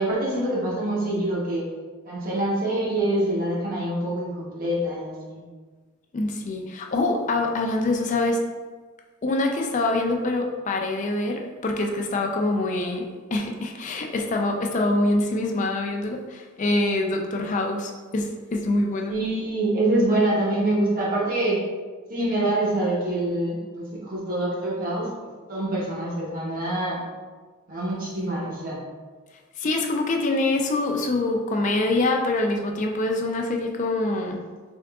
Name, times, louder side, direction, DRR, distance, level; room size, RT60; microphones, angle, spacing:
voice 1, 0.0-1.6 2.0-5.4 19.1-21.6 22.1-25.1 25.5-27.0 27.7-28.8, right 1 dB, 40° right, -5 dB, 0.9 m, -25 dB
voice 2, 6.1-8.4 9.2-19.2 29.6-34.4, left 2 dB, 35° left, 2 dB, 0.4 m, -25 dB
3.7 x 3.5 x 2.3 m, 1.4 s
head